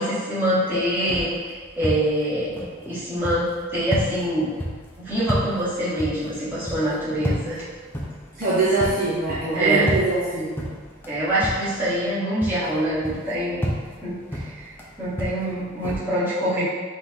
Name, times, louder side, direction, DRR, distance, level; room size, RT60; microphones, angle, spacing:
voice 1, 0.0-2.5 2.8-4.5 5.0-7.6 9.5-9.9 11.0-13.7 14.0-14.7 15.0-16.6, right 1 dB, 10° right, -12 dB, 1.5 m, -25 dB
sound 1, 0.7-12.1 12.4-16.0, equal, 10° left, 0.5 m, -32 dB
voice 2, 8.3-10.6, right 2 dB, 45° right, -7 dB, 0.6 m, -23 dB
4.0 x 3.0 x 3.6 m, 1.5 s
head